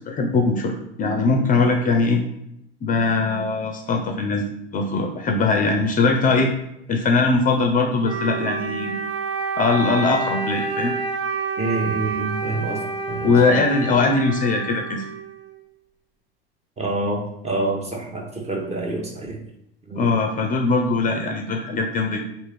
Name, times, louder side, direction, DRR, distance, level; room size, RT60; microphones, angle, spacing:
voice 1, 0.1-2.2 2.8-4.5 4.7-6.5 6.9-8.9 9.6-11.0 13.2-15.0 20.0-22.2, left 3 dB, 30° left, 3 dB, 0.5 m, -21 dB
Wind instrument woodwind instrument, 8.0-15.6, right 5 dB, 85° right, 1.1 m, -28 dB
voice 2, 11.6-12.8 13.1-13.3 16.8-19.4 19.9-20.1, right 2 dB, 20° right, 2 dB, 0.8 m, -27 dB
3.5 x 2.5 x 3.3 m, 0.79 s
hypercardioid pair, 75°, 30 cm